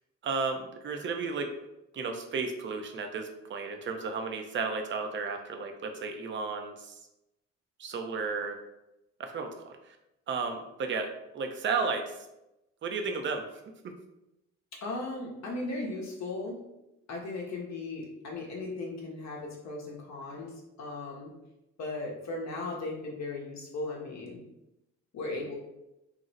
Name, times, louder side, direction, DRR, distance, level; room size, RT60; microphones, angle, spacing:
voice 1, 0.2-1.5 1.9-6.9 7.8-8.6 9.2-9.7 10.3-12.1 12.8-13.4 13.8-13.9, right 4 dB, 40° right, 5 dB, 0.5 m, -33 dB
voice 2, 14.7-16.6 17.1-21.3 21.8-24.4 25.1-25.6, left 2 dB, 60° left, -1 dB, 0.7 m, -37 dB
2.5 x 2.0 x 3.9 m, 0.91 s
cardioid pair, 90°, 30 cm